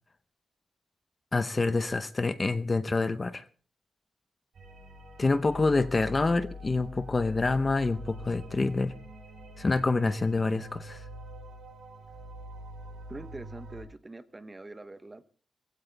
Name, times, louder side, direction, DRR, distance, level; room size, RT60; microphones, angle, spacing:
voice 1, 1.3-3.4 5.2-8.9 9.6-11.0, left 3 dB, 25° left, 0.7 m, -27 dB
sound 1, 4.5-13.8, left 1 dB, 60° right, 7.9 m, -44 dB
voice 2, 13.1-15.2, right 2 dB, 20° right, 1.0 m, -44 dB
20.0 x 16.0 x 3.4 m
wide cardioid pair, 160°, 0 cm